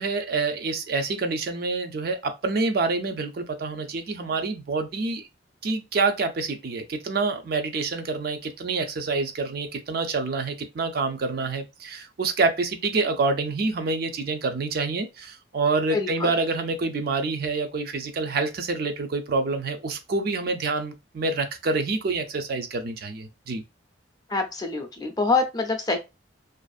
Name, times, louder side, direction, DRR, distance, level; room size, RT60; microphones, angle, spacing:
voice 1, 0.0-5.3 5.6-23.6, right 3 dB, 55° right, 0.4 m, -27 dB
voice 2, 15.9-16.3 24.3-26.0, left 3 dB, 20° left, 0.5 m, -25 dB
2.5 x 2.4 x 2.4 m
head